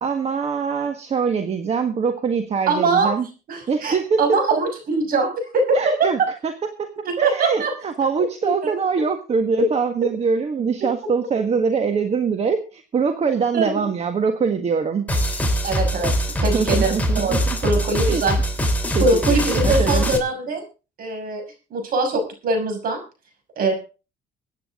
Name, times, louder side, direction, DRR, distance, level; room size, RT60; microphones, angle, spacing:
voice 1, 0.0-3.3 3.7-4.4 5.7-6.5 6.8-6.9 7.2-15.1 16.5-17.4 18.0-18.2 18.9-20.1, right 5 dB, 40° right, 7 dB, 1.6 m, -23 dB
voice 2, 2.7-3.1 3.5-6.3 7.0-7.7 8.4-8.5 13.5-13.8 15.6-16.1 16.4-18.4 19.0-20.6 21.0-21.4 21.7-23.0 23.6-23.7, right 3 dB, 60° right, 5 dB, 6.1 m, -22 dB
sound 1, 15.1-20.2, equal, 10° left, 3.0 m, -22 dB
23.0 x 9.6 x 3.7 m, 0.33 s
cardioid pair, 110°, 17 cm